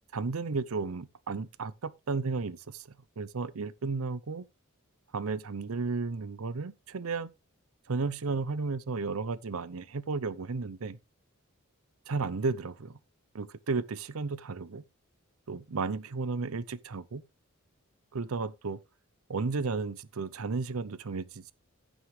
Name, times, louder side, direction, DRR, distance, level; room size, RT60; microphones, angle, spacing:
voice 1, 0.1-2.8 3.2-4.5 5.1-7.3 7.9-11.0 12.1-12.9 13.3-14.8 15.5-17.2 18.1-18.8 19.3-21.5, right 4 dB, 80° right, 0.7 m, -33 dB
14.5 x 6.2 x 3.2 m
head